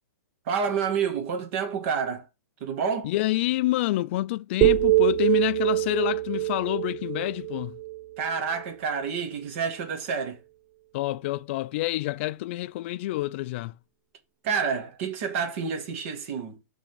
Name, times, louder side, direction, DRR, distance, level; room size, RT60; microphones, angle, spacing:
voice 1, 0.5-2.3 2.6-3.1 8.2-10.4 14.4-16.6, right 6 dB, 45° right, 2.0 m, -29 dB
voice 2, 3.0-7.8 10.9-13.7, left 17 dB, 40° left, 0.4 m, -28 dB
sound 1, 4.6-8.7, right 16 dB, 15° right, 0.5 m, -24 dB
6.0 x 3.7 x 5.9 m
hypercardioid pair, 155°, 10 cm